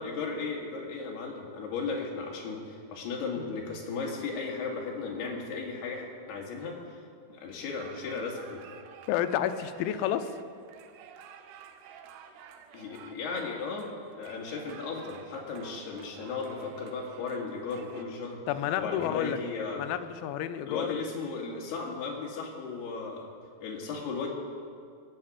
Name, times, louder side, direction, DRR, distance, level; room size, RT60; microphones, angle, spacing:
voice 1, 0.0-6.8 7.3-8.6 12.7-18.4 18.8-19.8 20.6-23.3 23.6-24.3, left 4 dB, 65° left, -1 dB, 4.0 m, -36 dB
sound 1, 7.8-18.0, right 8 dB, 75° right, 2.8 m, -51 dB
voice 2, 9.1-10.3 18.5-19.4 19.8-20.9, left 11 dB, 90° left, 10 dB, 3.1 m, -30 dB
20.0 x 7.6 x 8.5 m, 2.3 s
omnidirectional pair, 5.3 m